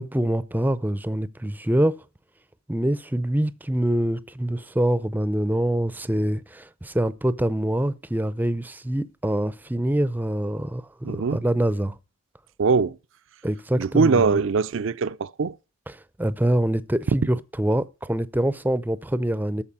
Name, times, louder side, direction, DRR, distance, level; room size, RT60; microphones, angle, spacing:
voice 1, 0.0-2.0 2.7-12.0 13.4-14.4 15.9-19.6, right 1 dB, 10° right, 0.5 m, -25 dB
voice 2, 11.0-11.4 12.6-13.0 13.8-15.5, right 5 dB, 65° right, 0.5 m, -22 dB
13.5 x 4.9 x 8.3 m
head